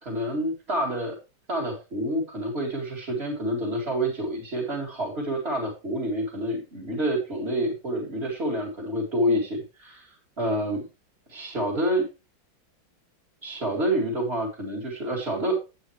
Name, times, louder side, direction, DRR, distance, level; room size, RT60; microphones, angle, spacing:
voice 1, 0.0-1.2 1.5-10.1 10.4-10.8 11.3-12.1 13.4-15.6, right 1 dB, 30° right, -3 dB, 2.5 m, -28 dB
10.0 x 8.6 x 3.2 m, 0.28 s
omnidirectional pair, 2.1 m